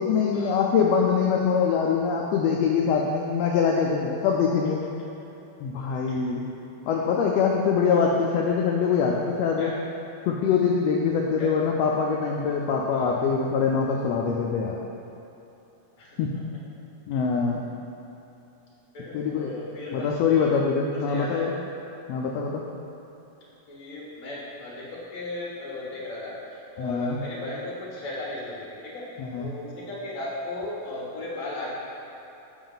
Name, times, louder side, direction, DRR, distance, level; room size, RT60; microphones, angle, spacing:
voice 1, 0.0-4.8 5.6-6.4 6.9-9.7 10.3-14.8 16.2-16.3 17.1-17.6 19.1-19.5 19.9-21.5 22.1-22.7 26.8-27.2 29.2-29.5, left 6 dB, 80° left, 0 dB, 1.5 m, -24 dB
voice 2, 12.9-13.4 16.0-16.2 17.1-17.2 18.9-20.6 20.9-21.5 23.7-29.1 29.4-31.7, left 2 dB, 40° left, -6 dB, 1.3 m, -36 dB
7.1 x 5.1 x 3.9 m, 3.0 s
omnidirectional pair, 3.3 m